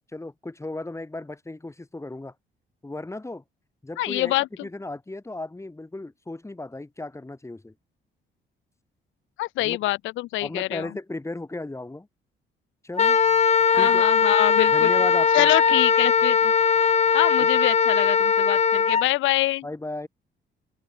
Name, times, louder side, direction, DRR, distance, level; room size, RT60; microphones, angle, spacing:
voice 1, 0.1-2.3 2.8-3.4 3.8-4.3 4.6-7.7 9.6-9.8 10.4-12.1 12.8-13.2 13.8-14.0 14.7-15.5 17.4-17.5 19.6-20.1, left 2 dB, 15° left, 5.4 m, -35 dB
voice 2, 4.0-4.5 9.4-10.9 13.7-14.9 15.3-16.5 17.1-19.6, left 17 dB, 80° left, 0.5 m, -25 dB
Wind instrument woodwind instrument, 13.0-19.0, left 6 dB, 35° left, 0.9 m, -20 dB
cardioid pair, 90°, 20 cm